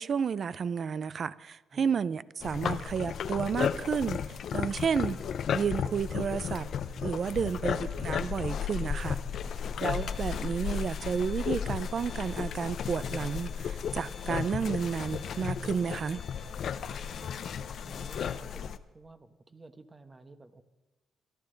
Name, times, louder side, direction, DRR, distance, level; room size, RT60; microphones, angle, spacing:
voice 1, 0.0-5.2 5.5-6.7 7.0-9.2 9.8-16.2, right 6 dB, 50° right, 0.5 m, -31 dB
voice 2, 1.7-2.0 4.7-4.9 7.3-7.8 9.4-9.8 16.5-20.6, right 3 dB, 25° right, 1.1 m, -53 dB
sound 1, 2.4-18.8, left 7 dB, 65° left, 0.6 m, -34 dB
sound 2, 9.9-18.4, left 3 dB, 25° left, 1.6 m, -56 dB
23.5 x 12.0 x 3.9 m
cardioid pair, 90°, 0 cm